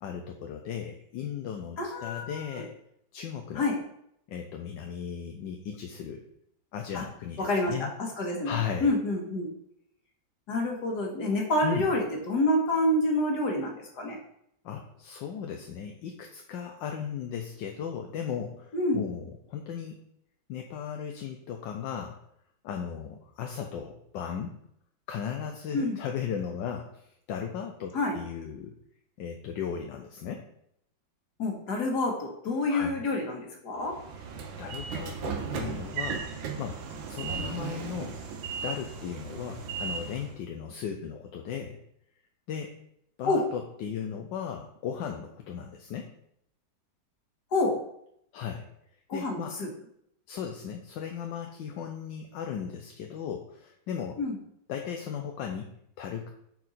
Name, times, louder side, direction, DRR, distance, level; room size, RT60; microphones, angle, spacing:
voice 1, 0.0-2.7 3.1-3.7 4.3-6.2 6.7-7.9 8.4-8.9 11.6-11.9 14.6-20.0 20.5-22.2 22.6-24.6 25.1-28.7 29.2-30.5 32.7-33.0 34.6-36.3 36.6-38.2 38.6-41.8 42.5-42.8 43.2-46.1 48.3-48.7 49.1-49.6 50.3-54.2 54.7-56.3, left 8 dB, 75° left, 3 dB, 1.4 m, -36 dB
voice 2, 1.8-2.4 3.6-3.8 6.9-7.0 7.4-7.7 8.0-9.5 10.5-14.2 18.7-19.0 25.7-26.0 27.9-28.1 31.4-33.9 43.3-43.4 47.5-47.8 49.1-49.7 54.2-54.4, left 2 dB, 60° left, 0 dB, 2.0 m, -28 dB
Train / Sliding door, 33.9-40.4, right 6 dB, 90° right, 1.7 m, -36 dB
8.8 x 4.7 x 4.1 m, 0.74 s
omnidirectional pair, 2.0 m